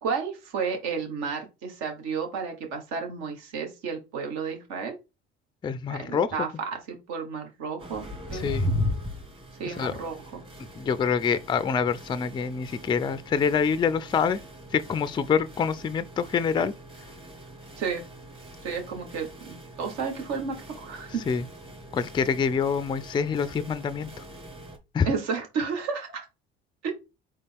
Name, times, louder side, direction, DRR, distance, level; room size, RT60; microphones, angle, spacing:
voice 1, 0.0-5.0 5.9-8.5 9.6-10.4 17.8-18.0 18.6-21.2 25.0-26.2 26.8-26.9, right 5 dB, 65° right, 1.6 m, -32 dB
voice 2, 5.6-6.3 8.3-8.7 9.7-10.0 10.8-14.4 14.7-16.7 21.3-21.5 21.9-24.1 24.9-25.1, left 6 dB, 15° left, 0.4 m, -26 dB
sound 1, 7.8-24.8, left 1 dB, 20° right, 1.8 m, -38 dB
4.1 x 3.2 x 3.5 m
hypercardioid pair, 65°, 29 cm